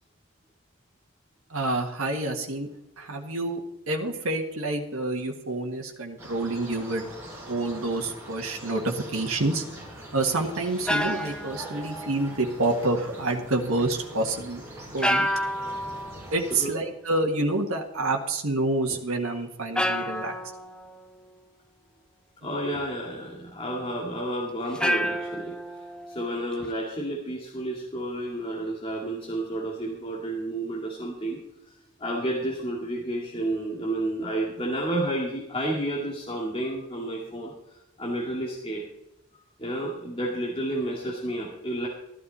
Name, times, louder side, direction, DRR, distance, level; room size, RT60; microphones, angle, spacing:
voice 1, 1.5-2.7 3.0-7.0 7.5-9.6 10.1-14.6 14.9-15.3 16.3-20.3, right 2 dB, 75° right, 1 dB, 1.7 m, -28 dB
sound 1, 6.2-16.6, right 1 dB, 15° right, 5.4 m, -43 dB
sound 2, 7.1-7.4 10.5-12.5 15.0-16.3 18.9-19.0 19.7-21.4 24.7-26.7, equal, 5° left, 0.5 m, -30 dB
voice 2, 22.4-25.5 26.1-31.4 32.0-38.8 39.6-41.9, right 1 dB, 25° left, -3 dB, 2.4 m, -31 dB
14.0 x 12.0 x 4.2 m, 0.84 s
head